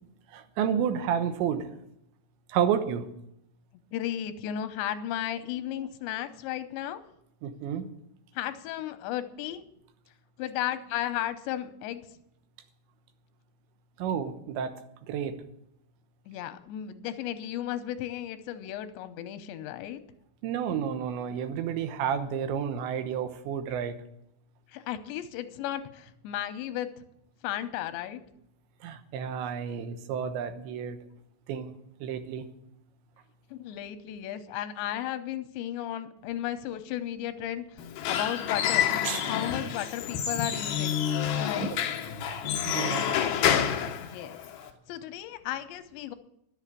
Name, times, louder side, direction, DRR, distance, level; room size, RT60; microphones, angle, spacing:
voice 1, 0.3-1.7 2.5-3.1 7.4-7.8 14.0-14.7 15.1-15.3 20.4-24.0 28.8-31.0 31.5-31.7 32.0-32.5 39.0-39.2 41.6-41.8 42.7-43.2, right 8 dB, 90° right, 9 dB, 3.4 m, -30 dB
voice 2, 3.9-7.0 8.4-9.6 10.4-12.0 16.3-20.0 24.7-26.9 27.4-28.2 33.5-37.8 38.1-38.9 39.3-41.0 41.4-41.7 44.0-44.4 44.9-46.2, left 11 dB, 90° left, 11 dB, 3.1 m, -34 dB
Squeak / Wood, 37.8-44.7, left 9 dB, 70° left, 2.7 m, -28 dB
11.0 x 8.3 x 8.3 m, 0.76 s
omnidirectional pair, 5.0 m